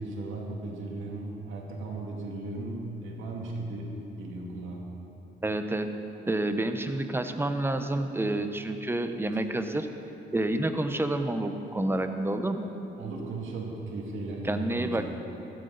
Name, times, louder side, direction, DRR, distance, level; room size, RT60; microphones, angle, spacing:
voice 1, 0.0-4.8 12.9-15.2, right 2 dB, 80° right, -1 dB, 2.3 m, -36 dB
voice 2, 5.4-5.9 6.3-9.9 10.3-12.7 14.4-15.0, right 1 dB, 10° right, 8 dB, 0.8 m, -29 dB
15.5 x 13.0 x 4.0 m, 3.0 s
cardioid pair, 90°, 20 cm